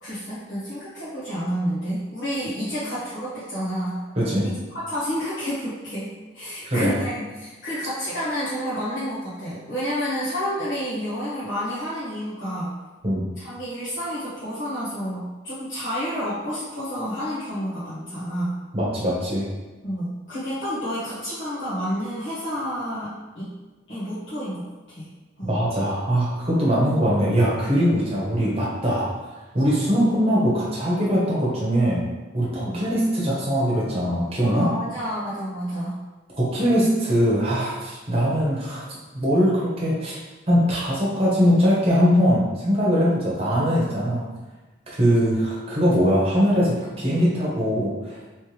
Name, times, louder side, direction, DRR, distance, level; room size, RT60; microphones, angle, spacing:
voice 1, 0.0-4.0 4.4-12.7 13.4-18.5 19.8-23.5 23.9-25.1 25.4-25.5 32.5-32.8 34.4-36.0, equal, 65° left, -12 dB, 1.1 m, -30 dB
voice 2, 4.2-4.5 6.6-6.9 13.0-13.2 18.7-19.5 25.4-29.1 29.5-32.0 32.3-34.7 36.4-38.9 39.1-40.2 40.5-44.2 45.0-48.2, equal, 30° right, -6 dB, 1.0 m, -21 dB
3.2 x 3.1 x 3.3 m, 1.2 s
head